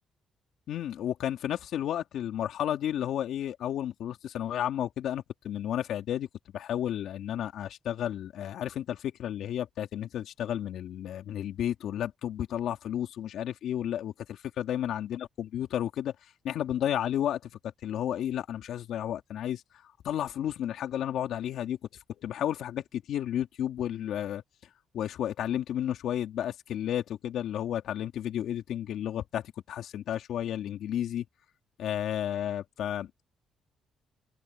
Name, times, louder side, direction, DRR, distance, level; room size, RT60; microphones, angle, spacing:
voice 1, 0.7-6.3 6.5-16.1 16.4-17.5 17.8-19.6 20.0-21.8 22.2-24.4 24.9-31.2 31.8-33.2, left 10 dB, 75° left, 2.7 m, -32 dB
open air
cardioid pair, 90°, 0 cm